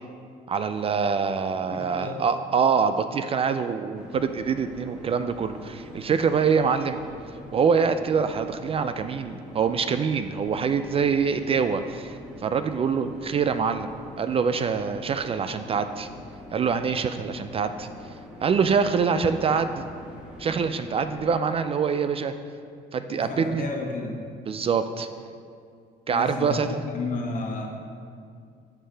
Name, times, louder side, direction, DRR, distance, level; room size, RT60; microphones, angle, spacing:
voice 1, 0.5-7.0 7.5-16.1 16.5-17.9 18.4-19.8 20.4-22.3 22.9-23.6 24.5-25.1 26.1-26.7, right 6 dB, 35° right, 10 dB, 0.4 m, -25 dB
voice 2, 1.7-2.2 23.1-24.2 26.1-27.7, left 3 dB, 50° left, 1 dB, 1.4 m, -32 dB
sound 1, 3.9-21.4, left 1 dB, 5° right, 1.4 m, -44 dB
13.0 x 5.6 x 3.3 m, 2.3 s
cardioid pair, 110°, 17 cm